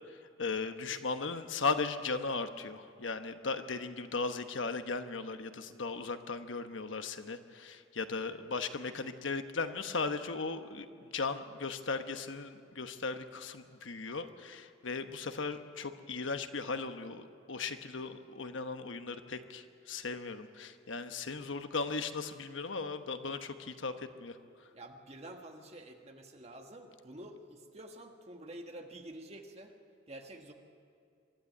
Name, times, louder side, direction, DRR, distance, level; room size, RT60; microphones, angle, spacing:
voice 1, 0.1-24.7, left 4 dB, 75° left, 8 dB, 1.1 m, -37 dB
voice 2, 24.7-29.7 30.1-30.5, right 1 dB, 30° right, 3 dB, 1.6 m, -48 dB
23.5 x 12.5 x 9.3 m, 2.3 s
head